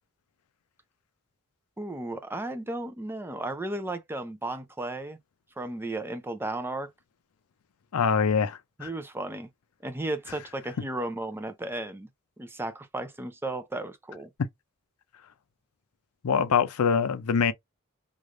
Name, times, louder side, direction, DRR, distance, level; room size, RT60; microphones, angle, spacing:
voice 1, 1.8-5.2 5.6-6.9 8.8-9.5 9.8-12.1 12.4-14.3, right 2 dB, 10° right, 0.4 m, -34 dB
voice 2, 7.9-8.9 16.2-17.5, left 6 dB, 75° left, 0.4 m, -24 dB
3.2 x 2.4 x 2.5 m
head